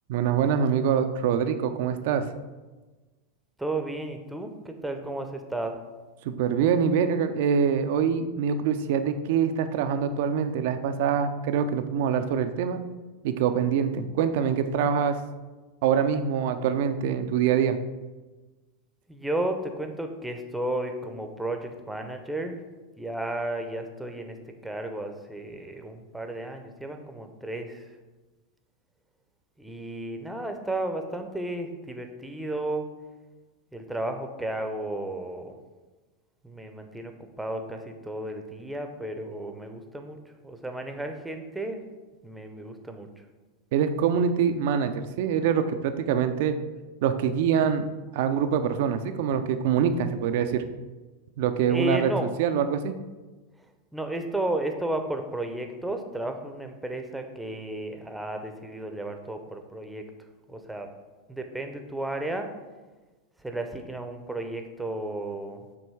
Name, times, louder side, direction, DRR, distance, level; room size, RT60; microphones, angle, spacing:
voice 1, 0.1-2.3 6.2-12.8 13.2-15.2 15.8-17.8 43.7-46.6 47.0-47.9 48.1-50.6 51.4-52.1 52.4-52.9, right 7 dB, 60° right, 9 dB, 0.5 m, -24 dB
voice 2, 3.6-5.8 19.1-22.6 23.0-24.4 24.6-27.9 29.6-32.9 33.7-35.5 36.4-37.1 37.4-40.2 40.4-41.8 42.2-43.1 51.7-52.3 53.9-60.0 60.5-60.9 61.3-62.5 63.4-65.7, right 1 dB, 5° right, 5 dB, 0.8 m, -33 dB
7.1 x 3.0 x 4.7 m, 1.2 s
hypercardioid pair, 95°, 0 cm